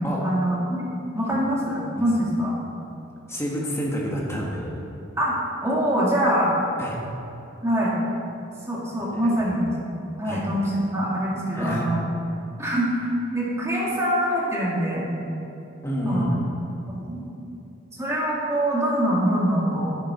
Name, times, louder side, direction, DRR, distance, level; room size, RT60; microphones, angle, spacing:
voice 1, 0.2-0.8 1.2-2.6 5.2-5.4 5.6-6.5 7.6-8.0 8.7-9.7 10.2-12.0 12.6-15.1 16.1-16.3 16.9-17.3 18.0-20.0, equal, 15° right, -5 dB, 2.2 m, -24 dB
voice 2, 3.3-4.7 6.8-7.0 9.1-9.2 10.2-10.4 11.5-11.9 15.8-16.6, equal, 15° left, -3 dB, 1.6 m, -28 dB
10.0 x 9.8 x 4.3 m, 2.8 s
head